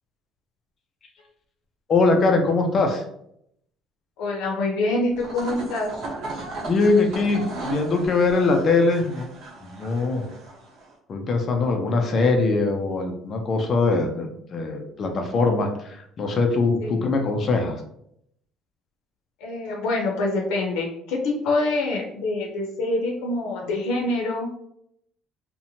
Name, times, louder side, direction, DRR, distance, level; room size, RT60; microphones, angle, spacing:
voice 1, 1.9-3.0 6.7-9.3 9.6-10.3 11.1-17.8, left 3 dB, 30° left, 3 dB, 0.3 m, -22 dB
voice 2, 4.2-5.9 16.8-17.0 19.4-24.6, left 2 dB, 90° left, -1 dB, 0.5 m, -25 dB
sound 1, 5.1-10.9, right 2 dB, 45° right, 0.9 m, -36 dB
2.7 x 2.1 x 2.7 m, 0.73 s
cardioid pair, 165°, 0 cm